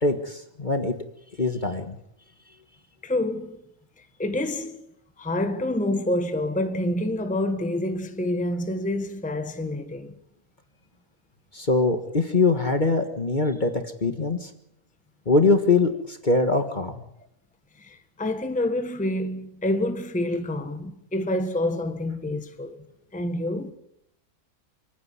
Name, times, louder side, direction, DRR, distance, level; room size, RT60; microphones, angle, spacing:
voice 1, 0.0-0.9 1.4-1.9 11.5-14.5 15.3-17.0, left 3 dB, 30° left, 1.6 m, -23 dB
voice 2, 3.0-3.6 4.0-4.9 5.2-10.1 17.8-22.8 23.1-23.7, left 1 dB, 5° left, 1.3 m, -27 dB
29.5 x 9.9 x 9.6 m
omnidirectional pair, 1.6 m